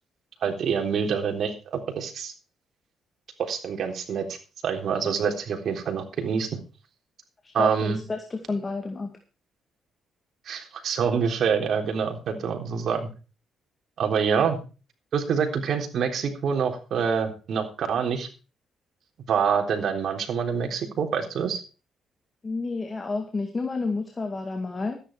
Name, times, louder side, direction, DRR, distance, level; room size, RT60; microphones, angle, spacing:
voice 1, 0.4-2.3 3.4-4.4 4.6-6.6 7.5-8.0 10.5-13.1 14.0-14.6 15.1-18.3 19.3-21.6, right 6 dB, 65° right, 4 dB, 3.6 m, -26 dB
voice 2, 7.4-9.2 22.4-25.0, left 3 dB, 30° left, 5 dB, 2.2 m, -30 dB
13.5 x 10.5 x 4.7 m, 0.34 s
cardioid pair, 90°, 0 cm